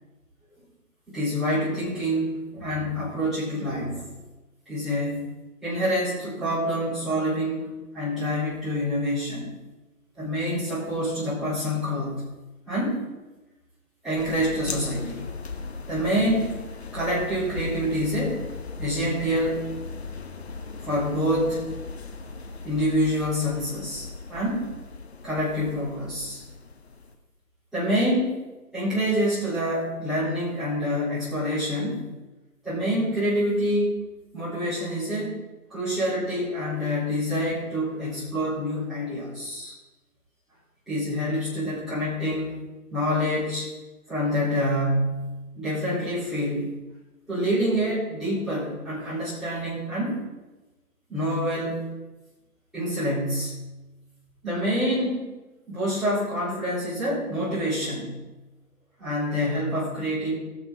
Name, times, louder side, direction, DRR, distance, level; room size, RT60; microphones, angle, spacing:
voice 1, 1.1-4.1 4.7-5.2 5.6-9.5 10.2-12.3 12.7-13.0 14.0-15.3 15.9-16.6 16.9-18.4 18.8-19.7 20.8-21.6 22.6-24.7 25.2-26.4 27.7-28.4 28.7-32.1 32.6-34.0 34.3-35.4 35.7-39.7 40.9-42.6 42.9-43.7 44.1-46.7 47.3-50.2 51.1-51.9 52.7-53.7 54.4-55.3 55.7-58.2 59.0-60.3, equal, ahead, -14 dB, 4.0 m, -27 dB
sound 1, 14.2-27.1, left 4 dB, 45° left, 1.2 m, -38 dB
20.0 x 7.2 x 4.0 m, 1.1 s
hypercardioid pair, 165°, 46 cm